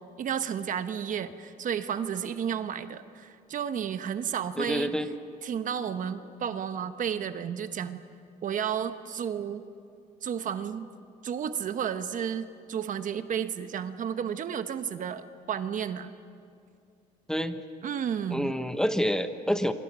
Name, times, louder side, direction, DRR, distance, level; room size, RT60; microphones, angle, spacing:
voice 1, 0.0-4.9 5.4-8.0 8.4-9.6 10.2-10.9 11.2-16.1 17.8-18.5, right 8 dB, 50° right, 10 dB, 1.1 m, -32 dB
voice 2, 4.6-5.1 17.3-17.6 18.3-19.7, equal, 5° left, 9 dB, 1.1 m, -28 dB
27.5 x 24.5 x 6.2 m, 2.4 s
cardioid pair, 110°, 17 cm